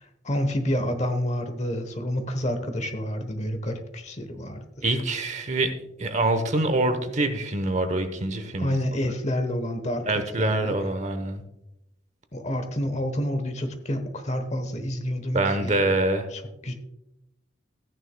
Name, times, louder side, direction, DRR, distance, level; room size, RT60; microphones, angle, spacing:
voice 1, 0.2-4.7 8.6-10.7 12.3-15.8 16.3-16.7, equal, 35° left, 8 dB, 1.0 m, -29 dB
voice 2, 4.8-5.7 6.0-8.7 10.1-11.4 15.3-16.3, right 2 dB, 35° right, 8 dB, 0.9 m, -25 dB
14.0 x 9.7 x 2.2 m, 0.87 s
head